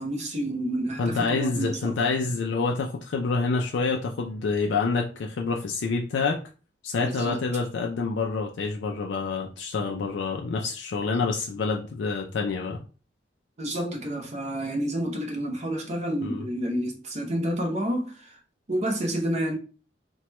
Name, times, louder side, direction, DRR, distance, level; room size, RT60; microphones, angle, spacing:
voice 1, 0.0-2.0 7.0-7.4 13.6-18.4 18.7-19.6, right 1 dB, 40° right, 0.7 m, -29 dB
voice 2, 1.0-6.4 6.8-12.8 16.2-16.5, left 4 dB, 70° left, 0.4 m, -27 dB
2.9 x 2.2 x 3.0 m
head